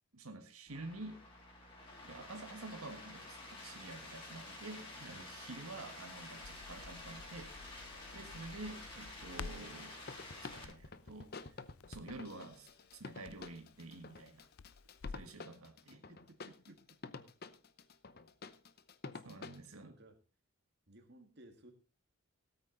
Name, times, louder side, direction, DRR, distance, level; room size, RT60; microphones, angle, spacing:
voice 1, 0.1-1.2 2.0-7.5 8.1-11.5 11.9-14.5 15.1-16.0 19.2-19.9, right 2 dB, 80° right, 5 dB, 1.7 m, -49 dB
sound 1, 0.7-10.6, left 2 dB, 25° left, 3.9 m, -50 dB
sound 2, 4.7-5.7 10.1-19.7, left 4 dB, 45° left, 0.7 m, -51 dB
Crackle, 6.1-15.3, left 4 dB, 75° left, 0.5 m, -53 dB
voice 2, 15.9-17.0 19.8-20.2 20.9-21.7, right 1 dB, 50° right, 4 dB, 1.9 m, -60 dB
17.0 x 9.0 x 3.9 m, 0.32 s
head